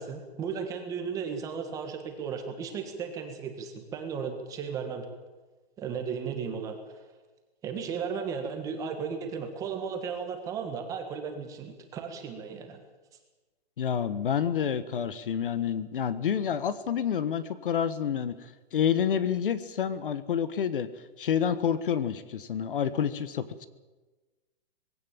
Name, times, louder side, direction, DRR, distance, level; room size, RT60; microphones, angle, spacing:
voice 1, 0.0-5.0 5.8-7.0 7.6-12.8, right 6 dB, 10° right, 5 dB, 1.5 m, -35 dB
voice 2, 13.8-18.3 18.7-20.9 21.2-23.7, left 8 dB, 55° left, 14 dB, 1.4 m, -28 dB
20.5 x 16.5 x 8.9 m, 1.2 s
hypercardioid pair, 175°, 31 cm